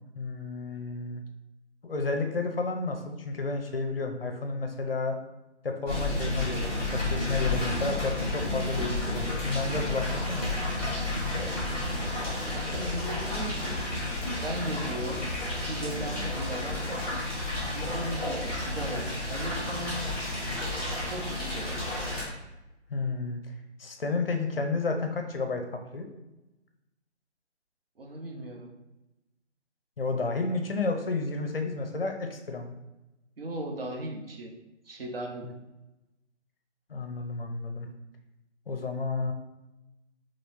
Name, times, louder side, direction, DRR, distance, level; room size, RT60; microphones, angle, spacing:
voice 1, 0.1-1.2 1.8-5.2 5.6-10.4 22.9-23.4 23.8-26.1 30.0-32.7 35.4-35.5 36.9-37.9 38.7-39.3, left 3 dB, 55° left, 4 dB, 0.6 m, -31 dB
sound 1, 5.9-22.2, left 2 dB, 5° right, 1.0 m, -31 dB
voice 2, 12.4-13.9 14.4-15.3 15.6-17.1 17.7-20.0 21.0-21.9 28.0-28.7 33.4-34.5 34.9-35.5, right 1 dB, 55° right, 1 dB, 0.8 m, -37 dB
4.2 x 3.1 x 2.6 m, 0.99 s
figure-of-eight pair, 155°, 35 cm